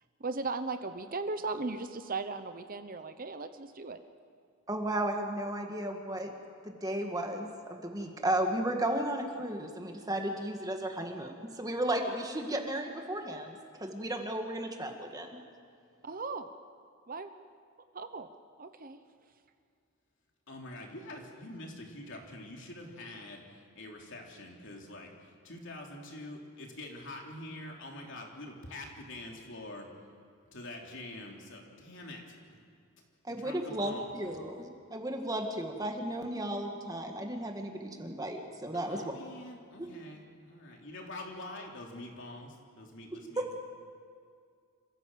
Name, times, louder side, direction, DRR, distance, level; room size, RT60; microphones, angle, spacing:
voice 1, 0.2-4.0 16.0-16.5 17.1-17.3 17.9-18.3 18.6-19.0, right 3 dB, 40° right, 9 dB, 0.9 m, -37 dB
voice 2, 4.7-6.3 6.6-15.4 33.2-39.1 39.8-39.9 43.4-43.5, right 1 dB, 15° right, 3 dB, 1.9 m, -34 dB
voice 3, 20.5-29.9 30.5-32.6 33.3-34.4 38.7-43.6, left 1 dB, 55° left, 0 dB, 3.5 m, -45 dB
27.5 x 15.5 x 7.6 m, 2.3 s
head